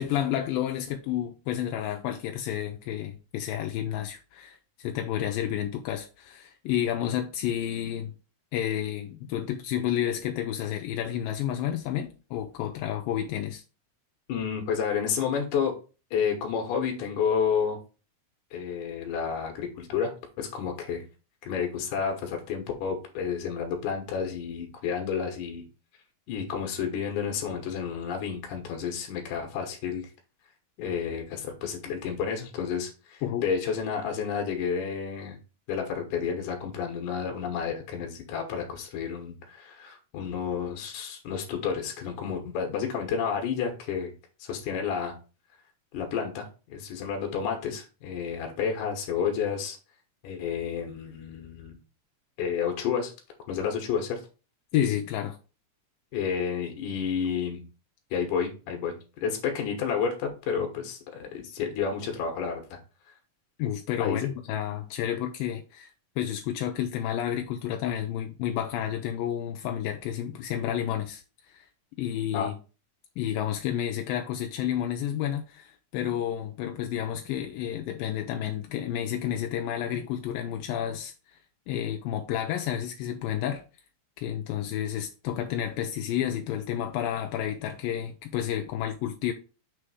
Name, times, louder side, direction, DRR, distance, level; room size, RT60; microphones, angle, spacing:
voice 1, 0.0-8.1 8.5-13.6 33.2-33.5 54.7-55.4 63.6-65.9 66.2-71.7 72.0-72.5 73.2-81.1 81.7-83.6 84.2-89.3, left 10 dB, 85° left, 2.3 m, -30 dB
voice 2, 14.3-15.8 16.1-17.8 18.5-20.1 20.4-21.0 21.4-25.6 26.3-30.1 30.8-35.4 35.7-44.1 44.4-45.2 45.9-49.8 50.2-51.8 52.4-53.1 53.5-54.2 56.1-57.6 58.1-62.8 64.0-64.2 72.3-72.5, left 7 dB, 70° left, 2.4 m, -30 dB
6.0 x 3.3 x 4.8 m
omnidirectional pair, 4.1 m